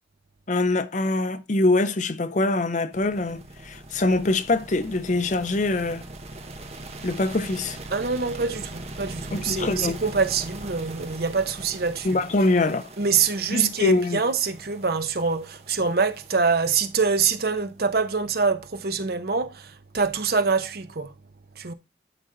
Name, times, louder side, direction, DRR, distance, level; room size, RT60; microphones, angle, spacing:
voice 1, 0.5-6.0 7.0-7.8 9.3-10.0 12.0-12.9 13.5-14.2, left 2 dB, 40° left, 0.5 m, -24 dB
sound 1, 2.9-18.1, right 2 dB, 35° right, 1.0 m, -41 dB
voice 2, 7.9-12.2 13.0-21.1 21.6-21.7, right 5 dB, 55° right, 0.8 m, -25 dB
12.0 x 4.0 x 3.9 m
head